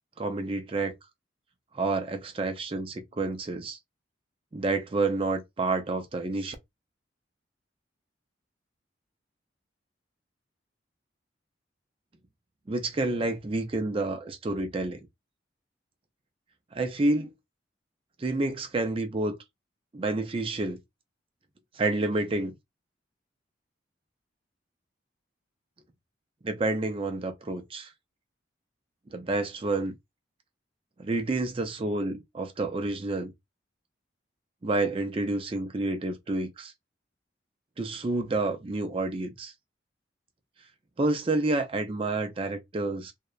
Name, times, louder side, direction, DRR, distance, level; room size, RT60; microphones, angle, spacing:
voice 1, 0.2-0.9 1.7-3.8 4.5-6.6 12.7-15.0 16.7-17.3 18.2-19.3 19.9-20.8 21.8-22.5 26.4-27.9 29.1-29.9 31.0-33.3 34.6-36.7 37.8-39.5 41.0-43.1, right 2 dB, 30° right, 0.4 m, -29 dB
2.8 x 2.0 x 2.3 m
head